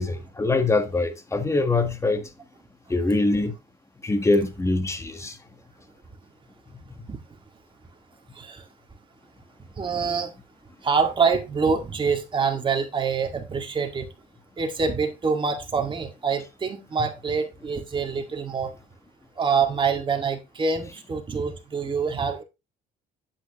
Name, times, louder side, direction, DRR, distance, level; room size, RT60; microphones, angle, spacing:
voice 1, 0.0-2.2 2.9-3.5 4.0-5.4, left 2 dB, 15° left, 1.3 m, -23 dB
voice 2, 8.3-8.7 9.8-10.3 10.8-14.1 14.6-18.7 19.4-22.4, right 5 dB, 30° right, 1.9 m, -25 dB
8.7 x 7.8 x 3.0 m
cardioid pair, 110°, 17 cm